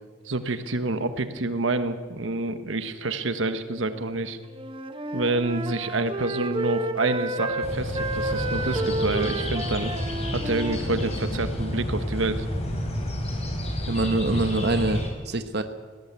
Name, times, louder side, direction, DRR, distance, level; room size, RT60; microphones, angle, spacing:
voice 1, 0.2-4.4 5.1-9.9 10.3-12.5, right 2 dB, 75° right, 10 dB, 1.2 m, -27 dB
Wind instrument woodwind instrument, 4.5-11.3, right 2 dB, 25° right, 1.2 m, -31 dB
sound 1, 7.6-15.1, equal, 35° left, 3.9 m, -30 dB
voice 2, 13.9-15.6, right 2 dB, 55° right, 8 dB, 1.2 m, -25 dB
18.5 x 17.5 x 8.2 m, 1.5 s
head